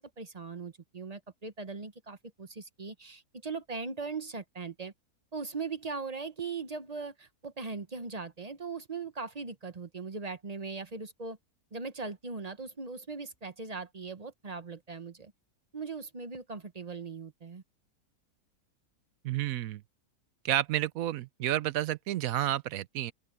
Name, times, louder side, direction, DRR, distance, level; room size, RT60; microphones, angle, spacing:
voice 1, 0.0-4.9 5.3-11.4 11.7-15.3 15.7-17.6, right 4 dB, 30° right, 0.8 m, -39 dB
voice 2, 19.2-19.8 20.4-23.1, right 13 dB, 70° right, 1.0 m, -30 dB
open air
omnidirectional pair, 1.6 m